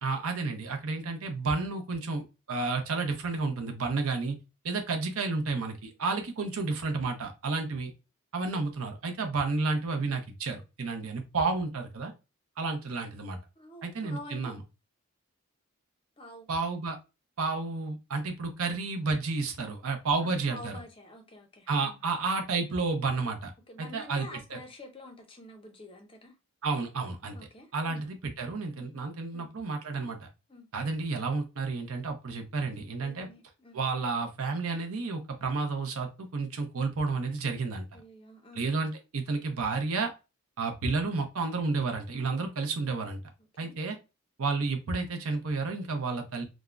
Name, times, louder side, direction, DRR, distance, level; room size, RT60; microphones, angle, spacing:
voice 1, 0.0-4.4 4.6-7.9 8.3-12.1 12.6-13.4 13.8-14.6 16.5-17.0 17.4-20.8 21.7-23.5 23.8-24.6 26.6-27.4 27.7-30.3 30.7-33.3 33.7-37.8 38.6-40.1 40.6-43.2 43.6-44.0 44.4-46.4, right 3 dB, 75° right, 4 dB, 0.6 m, -31 dB
voice 2, 13.6-14.5 16.2-16.5 20.2-22.0 23.7-26.4 27.3-28.0 28.7-29.0 29.3-29.5 30.5-30.7 33.0-33.8 37.9-38.7 43.5-43.8, left 1 dB, 25° left, 4 dB, 0.5 m, -48 dB
3.5 x 2.0 x 2.3 m, 0.27 s
head